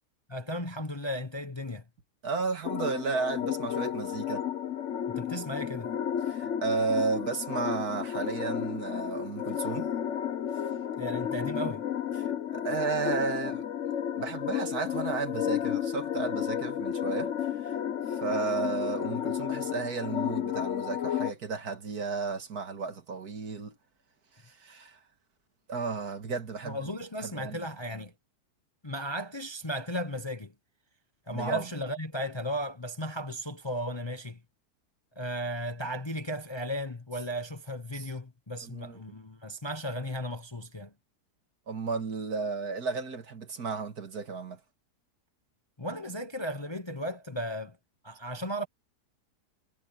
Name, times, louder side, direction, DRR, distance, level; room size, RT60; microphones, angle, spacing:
voice 1, 0.3-1.8 5.1-5.9 11.0-11.8 26.7-28.1 28.8-30.5 31.3-34.4 35.2-40.9 45.8-47.8 48.0-48.7, equal, 20° left, 0.9 m, -35 dB
voice 2, 2.2-4.5 6.3-9.9 12.2-13.7 14.2-17.8 18.1-23.8 24.4-25.0 25.7-26.8 27.2-27.6 31.3-31.6 37.9-38.1 38.6-39.0 41.7-44.6, right 4 dB, 65° right, 2.4 m, -33 dB
sound 1, 2.6-21.3, left 9 dB, 55° left, 1.1 m, -32 dB
omnidirectional pair, 1.7 m